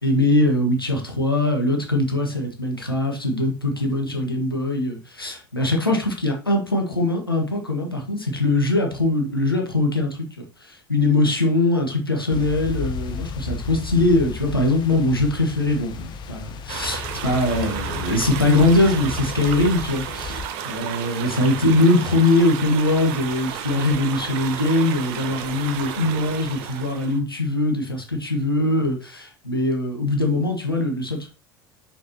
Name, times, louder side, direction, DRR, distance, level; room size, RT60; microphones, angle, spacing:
voice 1, 0.0-31.3, left 2 dB, 90° left, 1 dB, 1.4 m, -22 dB
sound 1, 12.3-20.5, left 5 dB, 40° left, 0.9 m, -33 dB
sound 2, 16.7-27.2, right 9 dB, 55° right, 0.9 m, -32 dB
6.3 x 5.9 x 2.8 m, 0.35 s
figure-of-eight pair, 70°, 12 cm